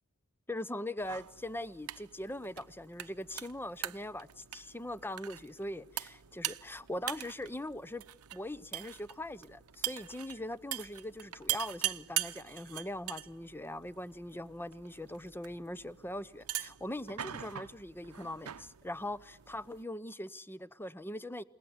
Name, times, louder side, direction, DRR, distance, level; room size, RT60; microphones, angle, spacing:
voice 1, 0.5-8.0 8.3-21.4, left 1 dB, 10° left, 0.9 m, -41 dB
sound 1, 1.0-19.8, right 13 dB, 90° right, 0.9 m, -42 dB
29.5 x 18.5 x 8.2 m
head